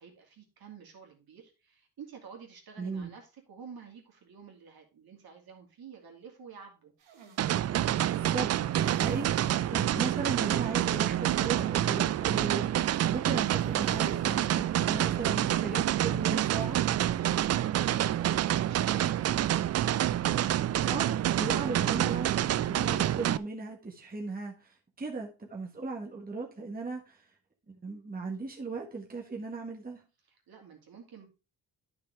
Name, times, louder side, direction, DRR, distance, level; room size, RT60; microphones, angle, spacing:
voice 1, 0.0-6.9 30.3-31.3, right 6 dB, 50° right, 2 dB, 2.7 m, -50 dB
voice 2, 2.8-3.1 8.1-16.8 20.9-27.3 27.7-30.0, right 3 dB, 20° right, 0 dB, 1.7 m, -37 dB
sound 1, 7.0-7.5 8.7-9.5 9.8-9.9 10.3-10.4 13.1-14.3 14.6-14.7 16.3-16.7, right 6 dB, 70° right, 2.3 m, -58 dB
sound 2, 7.4-23.4, right 12 dB, 35° right, 0.4 m, -27 dB
9.8 x 6.0 x 3.4 m, 0.30 s
hypercardioid pair, 55°, 45 cm